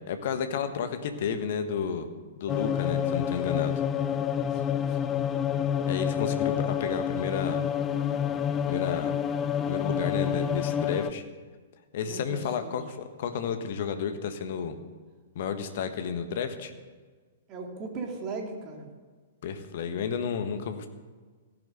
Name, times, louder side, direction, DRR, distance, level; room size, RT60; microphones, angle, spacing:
voice 1, 0.1-2.1 2.4-3.8 5.9-7.6 8.7-9.1 9.6-11.2 11.9-14.8 15.3-16.7 19.4-20.9, left 7 dB, 50° left, 8 dB, 1.4 m, -31 dB
sound 1, 2.5-11.1, left 8 dB, 20° left, 0.6 m, -28 dB
voice 2, 4.5-5.2 12.0-12.8 15.6-15.7 17.5-18.9, right 3 dB, 30° right, 2 dB, 2.7 m, -39 dB
15.0 x 10.5 x 6.7 m, 1.5 s
figure-of-eight pair, 110°, 0 cm